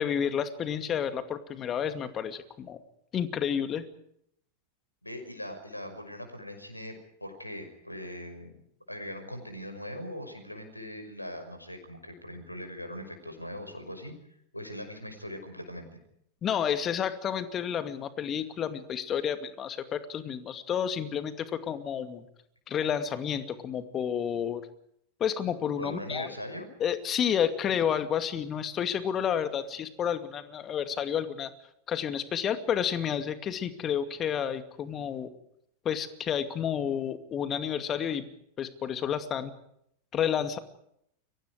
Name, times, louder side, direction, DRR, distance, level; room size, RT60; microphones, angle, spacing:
voice 1, 0.0-2.8 3.1-3.8 16.4-22.3 22.7-24.6 25.2-26.3 26.8-31.5 31.9-35.3 35.8-38.3 38.6-39.5 40.1-40.6, left 8 dB, 25° left, 10 dB, 2.4 m, -30 dB
voice 2, 5.0-7.0 7.2-8.6 8.9-14.1 14.5-15.9 25.8-26.7, left 1 dB, 85° left, 7 dB, 5.8 m, -40 dB
29.5 x 24.0 x 4.9 m, 0.73 s
figure-of-eight pair, 90°, 0 cm